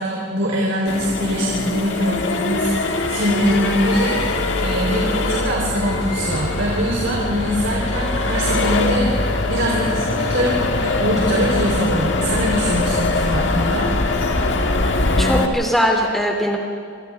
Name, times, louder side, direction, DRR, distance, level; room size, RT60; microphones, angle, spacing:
voice 1, 0.0-13.9, equal, 85° right, -4 dB, 4.1 m, -23 dB
Accelerating revving vroom, 0.9-15.5, left 2 dB, 70° left, 1.6 m, -22 dB
voice 2, 15.2-16.6, equal, ahead, 0 dB, 2.9 m, -20 dB
27.0 x 26.5 x 3.6 m, 2.2 s
head